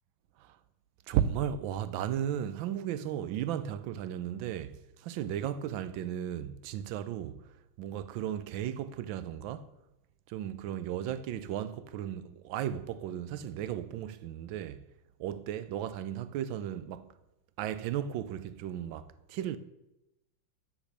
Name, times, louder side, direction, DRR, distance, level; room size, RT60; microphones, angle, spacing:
voice 1, 1.1-9.7 10.3-14.8 15.2-17.1 17.6-19.6, right 10 dB, 75° right, 1.3 m, -35 dB
9.5 x 7.1 x 6.7 m
omnidirectional pair, 2.3 m